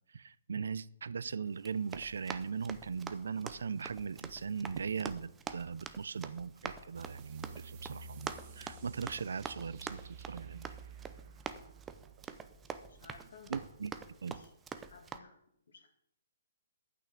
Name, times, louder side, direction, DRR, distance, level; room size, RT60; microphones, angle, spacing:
voice 1, 0.1-10.0 10.3-10.7 13.5-13.9 14.2-14.4, right 6 dB, 80° right, 0.5 m, -39 dB
Run, 1.6-15.2, right 6 dB, 15° right, 0.6 m, -46 dB
sound 1, 6.9-14.1, right 4 dB, 35° right, 1.2 m, -52 dB
voice 2, 12.9-13.7 14.3-14.5 14.9-15.4 15.7-15.9, left 4 dB, 75° left, 2.4 m, -56 dB
9.2 x 6.0 x 8.1 m
hypercardioid pair, 150°, 0 cm